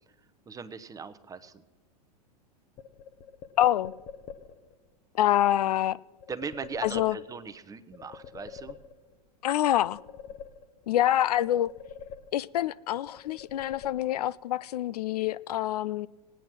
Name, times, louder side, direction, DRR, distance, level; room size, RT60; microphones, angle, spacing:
voice 1, 0.5-1.6 6.3-8.8, right 5 dB, 15° right, 0.8 m, -39 dB
sound 1, 2.8-4.7 6.2-7.6 7.9-9.3 9.6-11.0 11.3-12.7 13.1-14.4, left 7 dB, 40° left, 0.9 m, -46 dB
voice 2, 3.6-3.9 5.2-6.0 6.8-7.2 9.4-10.0 10.9-11.7 12.3-16.1, left 13 dB, 70° left, 0.4 m, -26 dB
17.5 x 9.1 x 6.0 m
hypercardioid pair, 100°, 21 cm